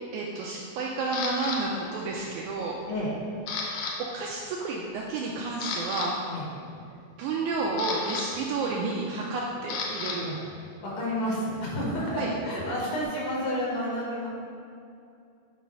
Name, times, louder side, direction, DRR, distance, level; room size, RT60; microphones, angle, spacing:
voice 1, 0.1-2.8 3.6-3.7 4.0-6.1 7.2-10.3 12.1-12.3, right 3 dB, 85° right, -2 dB, 1.8 m, -31 dB
Camera, 1.1-1.6 2.2-2.5 2.9-3.9 4.2-4.4 5.0-5.1 5.5-6.1 7.3-10.2 10.5-13.0, left 4 dB, 70° left, 1.9 m, -35 dB
voice 2, 10.7-14.3, equal, 55° left, -6 dB, 2.1 m, -30 dB
8.8 x 3.1 x 5.3 m, 2.5 s
omnidirectional pair, 4.0 m